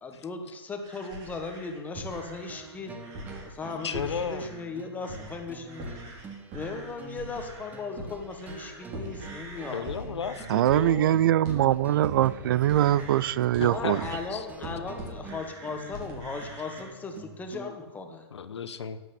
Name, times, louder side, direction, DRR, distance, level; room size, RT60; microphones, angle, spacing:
voice 1, 0.0-2.9 3.4-5.9 6.5-9.8 13.5-18.2, left 4 dB, 10° left, 1.4 m, -37 dB
sound 1, 0.8-4.7 5.0-5.4 5.7-16.8, right 1 dB, 35° right, 4.5 m, -42 dB
sound 2, 1.9-17.7, right 3 dB, 10° right, 1.1 m, -47 dB
voice 2, 3.8-4.5 9.7-11.2 12.9-13.3 13.6-14.0 14.3-14.5 14.8-14.9 18.3-19.0, left 6 dB, 85° left, 1.1 m, -34 dB
voice 3, 10.5-14.0, right 12 dB, 55° right, 0.4 m, -23 dB
11.0 x 8.4 x 8.6 m
hypercardioid pair, 140°, 14 cm